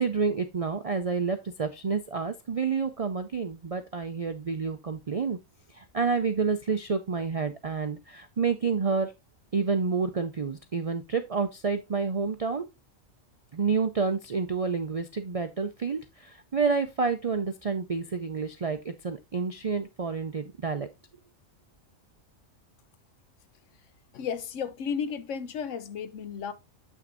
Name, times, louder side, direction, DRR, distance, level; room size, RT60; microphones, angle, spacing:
voice 1, 0.0-5.4 5.7-9.1 9.5-12.7 13.5-20.9, right 5 dB, 55° right, 0.4 m, -29 dB
voice 2, 24.1-26.5, left 7 dB, 70° left, 1.0 m, -33 dB
7.8 x 5.9 x 2.5 m
omnidirectional pair, 1.4 m